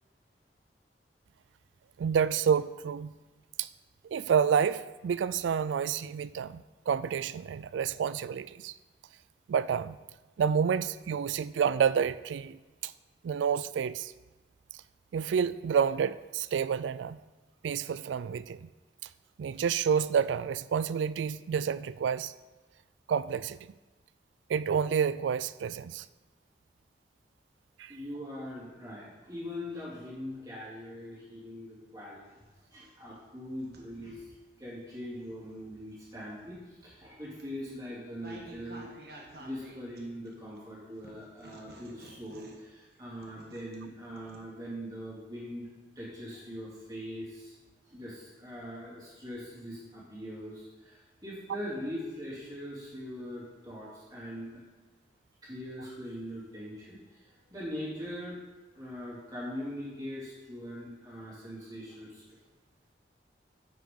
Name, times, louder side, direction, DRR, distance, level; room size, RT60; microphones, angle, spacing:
voice 1, 2.0-3.1 3.6-3.7 4.1-8.7 9.5-10.0 10.4-12.6 12.8-12.9 13.2-14.1 15.1-17.2 17.6-18.7 19.4-22.3 23.1-23.6 24.5-26.0 27.8-27.9, right 7 dB, 90° right, 0.3 m, -29 dB
voice 2, 27.9-32.2 32.7-34.2 34.6-38.9 39.4-45.7 45.9-47.6 47.8-54.6 55.4-58.4 58.7-62.2, equal, 20° right, 3.3 m, -41 dB
sound 1, 32.3-34.4 35.0-40.6 41.0-44.4, right 1 dB, 60° right, 1.4 m, -53 dB
9.7 x 8.3 x 4.0 m
head